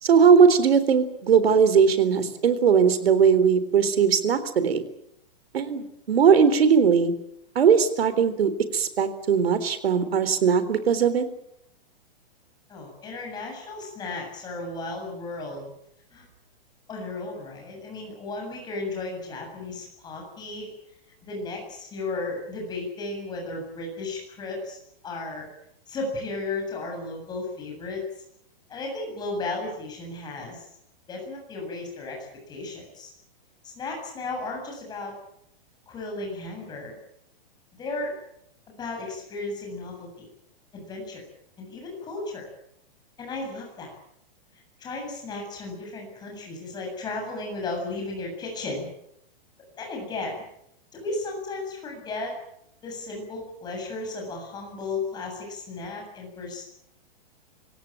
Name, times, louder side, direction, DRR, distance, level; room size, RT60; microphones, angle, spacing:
voice 1, 0.0-4.8 5.5-7.1 7.6-11.3, right 6 dB, 90° right, 13 dB, 3.9 m, -19 dB
voice 2, 12.7-15.7 16.1-16.2 16.9-20.7 21.2-24.8 25.0-25.5 25.9-28.1 28.7-30.6 31.1-33.1 33.6-35.1 35.9-36.9 37.8-38.2 38.8-40.3 40.7-41.2 41.6-42.5 43.2-43.9 44.8-48.9 49.8-50.4 50.9-52.3 52.8-56.6, left 3 dB, 15° left, 1 dB, 7.7 m, -34 dB
26.0 x 17.0 x 9.0 m, 0.75 s
hypercardioid pair, 165°, 29 cm